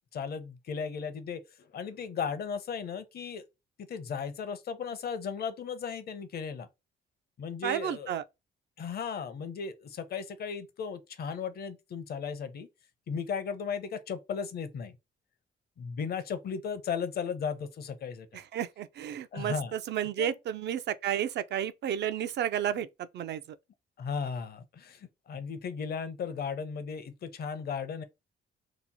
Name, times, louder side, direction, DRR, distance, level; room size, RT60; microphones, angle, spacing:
voice 1, 0.1-3.4 3.9-6.7 7.4-8.2 8.8-12.7 13.1-15.0 15.8-18.4 19.3-19.7 20.2-20.4 24.0-28.0, left 6 dB, 50° left, 0.6 m, -36 dB
voice 2, 7.6-8.2 18.3-22.9 23.1-23.6, right 10 dB, 60° right, 0.4 m, -32 dB
2.9 x 2.0 x 4.0 m
cardioid pair, 90°, 20 cm